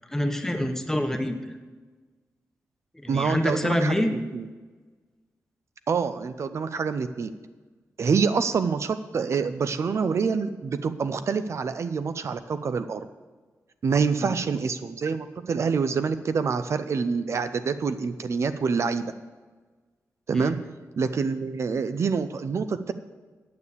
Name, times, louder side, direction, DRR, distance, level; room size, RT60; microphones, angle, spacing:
voice 1, 0.1-1.4 2.9-4.1 14.2-14.4 20.3-20.5, left 1 dB, 10° left, 5 dB, 1.0 m, -26 dB
voice 2, 3.1-4.5 5.9-7.3 8.0-13.0 13.8-19.1 20.3-20.6 21.0-22.9, right 5 dB, 60° right, 10 dB, 0.5 m, -26 dB
9.5 x 6.9 x 8.4 m, 1.3 s
wide cardioid pair, 115°, 5 cm